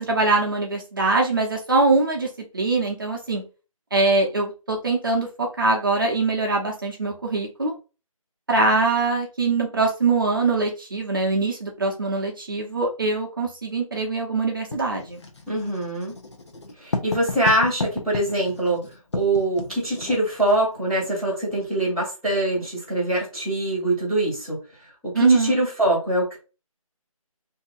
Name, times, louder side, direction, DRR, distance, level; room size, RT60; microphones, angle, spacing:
voice 1, 0.0-3.4 3.9-7.7 8.5-15.2 25.1-25.6, right 3 dB, 35° right, 0 dB, 0.7 m, -23 dB
Writing, 14.7-20.6, left 3 dB, 50° left, 0.7 m, -33 dB
voice 2, 15.5-16.1 16.8-18.8 19.1-24.6 25.0-26.4, right 1 dB, ahead, -15 dB, 0.8 m, -23 dB
2.7 x 2.4 x 3.9 m, 0.31 s
figure-of-eight pair, 165°, 18 cm